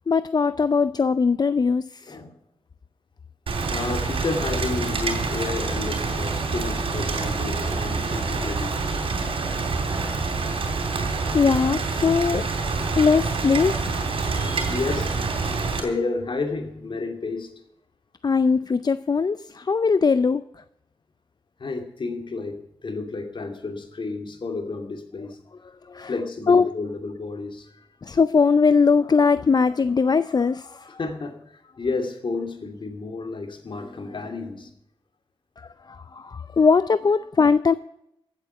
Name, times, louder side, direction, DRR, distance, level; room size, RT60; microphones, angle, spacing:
voice 1, 0.1-2.2 11.3-12.5 13.0-14.0 18.2-20.4 25.9-26.1 26.5-26.7 28.0-31.0 35.6-37.7, left 5 dB, 50° left, 14 dB, 0.5 m, -20 dB
voice 2, 2.1-2.4 3.6-8.8 14.3-15.5 15.7-17.6 21.6-25.4 26.0-27.9 30.9-34.7, left 3 dB, 65° left, 5 dB, 2.5 m, -31 dB
Rain, 3.5-15.8, right 4 dB, 90° right, 3.1 m, -26 dB
15.5 x 8.0 x 7.0 m, 0.80 s
cardioid pair, 65°, 9 cm